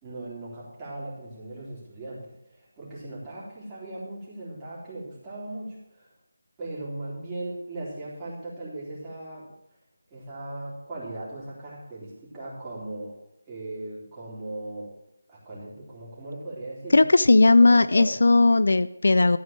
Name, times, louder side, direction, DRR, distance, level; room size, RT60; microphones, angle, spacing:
voice 1, 0.0-6.1 6.6-9.5 10.1-13.2 13.5-14.9 15.3-17.0 17.3-18.1, right 2 dB, 10° right, -8 dB, 3.7 m, -38 dB
voice 2, 16.9-19.4, left 3 dB, 65° left, 15 dB, 0.5 m, -17 dB
13.5 x 5.1 x 7.6 m, 0.86 s
figure-of-eight pair, 170°, 0 cm